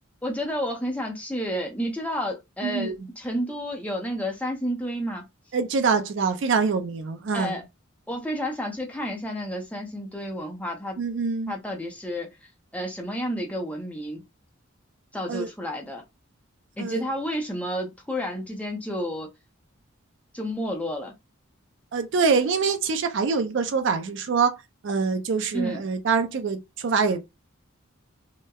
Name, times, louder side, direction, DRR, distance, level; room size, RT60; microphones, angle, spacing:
voice 1, 0.2-5.2 7.3-7.6 8.1-11.0 11.5-12.3 12.7-14.2 15.1-16.0 16.8-19.3 20.3-21.1 25.5-25.8, equal, 5° left, 0.5 m, -30 dB
voice 2, 5.5-7.6 11.0-11.5 15.3-15.5 16.8-17.0 21.9-24.5 24.8-27.2, right 5 dB, 60° right, 0.4 m, -24 dB
2.9 x 2.1 x 2.2 m
head